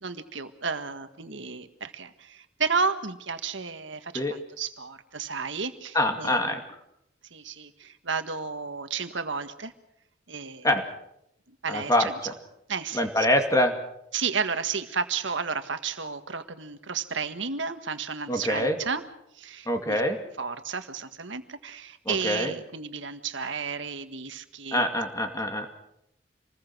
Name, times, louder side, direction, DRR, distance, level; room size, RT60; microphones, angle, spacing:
voice 1, 0.0-6.4 7.3-9.7 10.3-10.7 11.6-12.1 12.7-13.3 14.1-19.0 19.4-20.0 20.4-24.8, right 5 dB, 65° right, 9 dB, 1.7 m, -32 dB
voice 2, 5.9-6.6 10.6-10.8 11.7-12.1 12.9-13.7 18.3-18.8 19.7-20.2 22.1-22.5 24.7-25.7, left 1 dB, 15° left, 5 dB, 2.4 m, -24 dB
27.0 x 20.5 x 6.2 m, 0.79 s
head